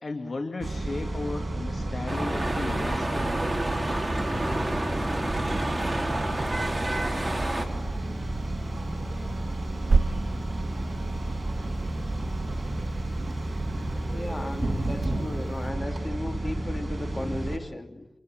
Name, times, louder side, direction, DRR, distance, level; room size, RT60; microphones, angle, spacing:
voice 1, 0.0-3.5, left 3 dB, 50° left, 6 dB, 2.3 m, -35 dB
sound 1, 0.6-17.6, right 1 dB, 30° right, 6.3 m, -31 dB
sound 2, 2.1-7.7, right 1 dB, 15° right, 4.3 m, -29 dB
sound 3, 4.2-15.7, right 3 dB, 55° right, 1.0 m, -35 dB
voice 2, 14.1-18.1, left 1 dB, 30° left, 6 dB, 3.0 m, -35 dB
28.5 x 27.0 x 7.6 m, 0.88 s
wide cardioid pair, 70°, 0 cm